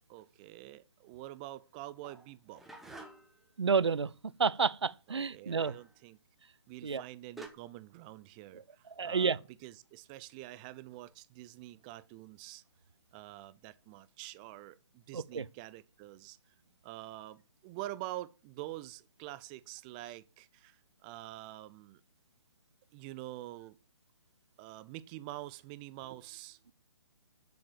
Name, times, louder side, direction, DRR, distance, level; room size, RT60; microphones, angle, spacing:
voice 1, 0.1-3.1 5.1-6.2 6.7-12.6 13.1-16.5 16.8-22.0 22.9-23.8 24.6-26.6, right 16 dB, 20° right, 0.4 m, -46 dB
sound 1, 2.0-3.4 5.6-5.9 6.9-7.0 7.4-7.5, right 2 dB, ahead, 1.0 m, -49 dB
voice 2, 3.6-4.1 4.4-5.7 6.8-7.0 9.0-9.4 15.1-15.4, right 5 dB, 75° right, 0.6 m, -30 dB
7.7 x 7.1 x 7.6 m
figure-of-eight pair, 140°, 14 cm